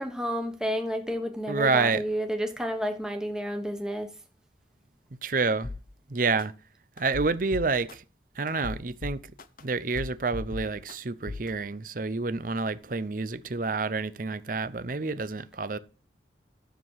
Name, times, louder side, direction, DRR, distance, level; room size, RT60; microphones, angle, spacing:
voice 1, 0.0-4.1, equal, 5° right, 1.3 m, -31 dB
voice 2, 1.5-2.0 5.2-5.7 6.1-6.5 7.0-8.0 8.4-9.2 9.6-15.8, right 4 dB, 50° right, 0.7 m, -28 dB
sound 1, 5.6-5.8 6.4-6.5 7.0-7.9 8.5-9.6 9.9-10.9 11.3-11.5, left 3 dB, 50° left, 0.7 m, -37 dB
12.5 x 7.3 x 4.7 m
head